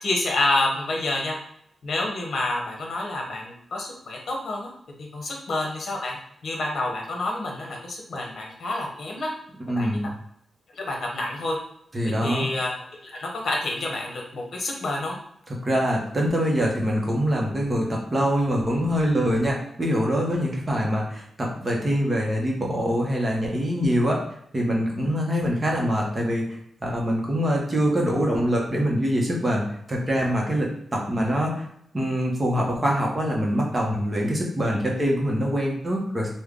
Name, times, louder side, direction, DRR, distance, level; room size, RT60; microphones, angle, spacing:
voice 1, 0.0-1.4 1.8-4.7 5.0-6.2 6.4-9.3 9.7-9.9 10.7-11.6 12.2-12.7 13.0-15.2, left 2 dB, 60° left, -1 dB, 0.9 m, -28 dB
voice 2, 9.7-10.1 11.9-12.4 15.6-24.2 24.5-26.4 26.8-31.7 31.9-36.3, equal, 20° right, -2 dB, 0.8 m, -24 dB
3.3 x 2.2 x 3.6 m, 0.70 s
wide cardioid pair, 160°, 0 cm